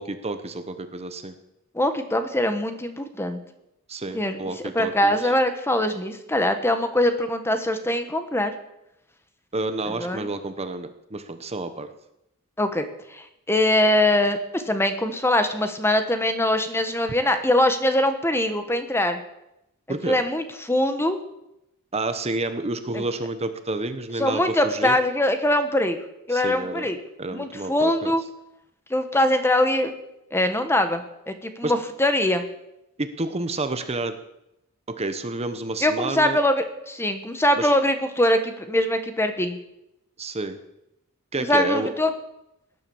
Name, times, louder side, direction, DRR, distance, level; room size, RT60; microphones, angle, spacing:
voice 1, 0.0-1.3 3.9-5.3 9.5-11.9 19.9-20.2 21.9-25.0 26.3-26.9 27.2-28.1 31.6-31.7 33.0-34.1 34.9-36.4 37.6-37.7 40.2-40.6 41.3-41.9, right 2 dB, 30° right, 9 dB, 1.1 m, -29 dB
voice 2, 1.7-3.4 4.1-4.4 4.7-8.5 10.0-10.3 12.6-12.8 13.1-19.2 20.1-21.2 22.9-23.0 24.2-26.0 26.3-27.0 27.3-28.2 28.9-29.9 30.3-32.4 35.8-39.6 41.4-42.1, left 1 dB, 10° left, 8 dB, 1.3 m, -22 dB
18.0 x 11.0 x 7.2 m, 0.86 s
head